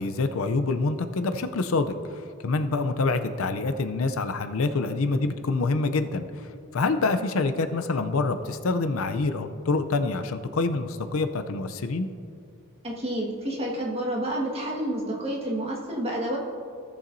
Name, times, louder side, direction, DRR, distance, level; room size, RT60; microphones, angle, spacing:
voice 1, 0.0-1.9 2.4-6.5 6.7-12.1, left 3 dB, 75° left, 9 dB, 0.5 m, -26 dB
voice 2, 12.8-16.4, right 1 dB, 30° right, -3 dB, 1.6 m, -29 dB
16.5 x 7.1 x 2.7 m, 2.5 s
head